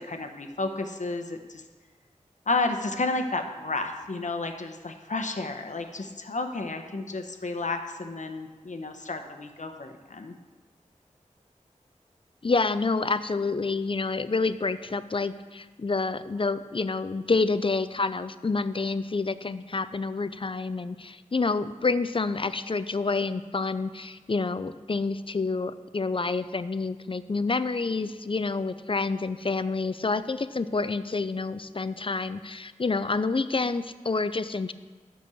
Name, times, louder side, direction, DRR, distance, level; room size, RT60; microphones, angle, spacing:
voice 1, 0.0-1.6 2.5-10.4, left 3 dB, 65° left, 6 dB, 0.9 m, -31 dB
voice 2, 12.4-34.7, left 3 dB, 40° left, 13 dB, 0.5 m, -28 dB
8.4 x 6.2 x 6.9 m, 1.4 s
wide cardioid pair, 50°, 13 cm